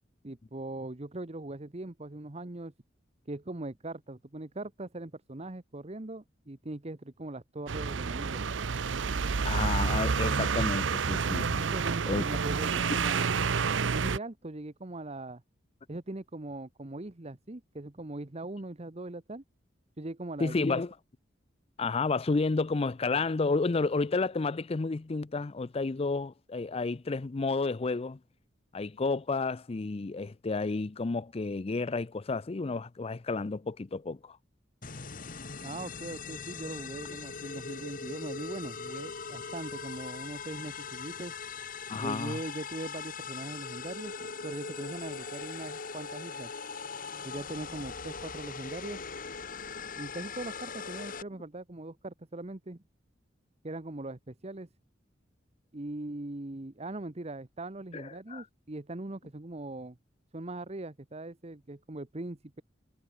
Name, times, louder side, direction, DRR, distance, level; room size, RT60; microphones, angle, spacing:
voice 1, 0.2-2.7 3.3-8.6 11.6-13.3 13.9-15.4 15.9-19.4 20.0-20.8 35.6-41.3 42.0-44.1 44.4-46.5 47.2-49.0 50.0-52.8 53.6-54.7 55.7-60.0 60.3-62.6, right 2 dB, 35° right, 1.1 m, -40 dB
sound 1, 7.7-14.2, right 5 dB, 90° right, 0.7 m, -29 dB
voice 2, 9.4-11.6 12.1-12.2 20.4-20.9 21.8-28.2 28.7-34.4 41.9-42.4 57.9-58.4, left 3 dB, 30° left, 0.5 m, -31 dB
sound 2, 34.8-51.2, left 5 dB, 50° left, 1.9 m, -41 dB
head